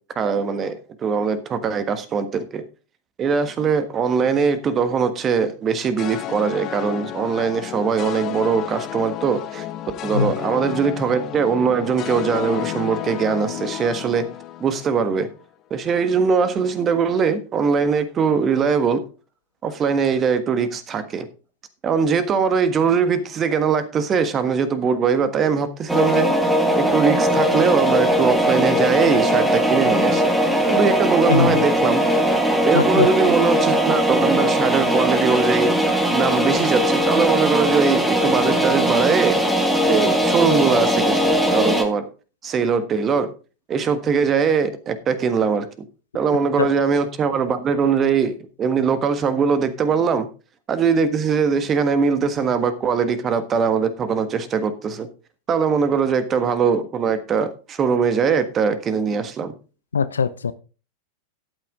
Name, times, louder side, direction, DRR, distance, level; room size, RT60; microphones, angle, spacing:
voice 1, 0.1-2.6 3.2-9.7 10.0-14.2 14.6-15.3 15.7-19.0 19.6-21.3 21.8-26.3 26.8-30.2 30.7-32.0 32.6-39.4 39.8-42.1 42.4-43.3 43.7-45.7 46.1-50.3 50.7-55.1 55.5-59.5, right 6 dB, 25° right, 1.5 m, -21 dB
sound 1, 6.0-15.3, left 12 dB, 35° left, 1.1 m, -32 dB
sound 2, 25.9-41.8, equal, 5° right, 1.9 m, -19 dB
voice 2, 31.3-31.6 32.7-33.1 46.6-46.7 59.9-60.5, left 6 dB, 70° left, 0.7 m, -20 dB
12.5 x 8.9 x 3.7 m
figure-of-eight pair, 90°, 0 cm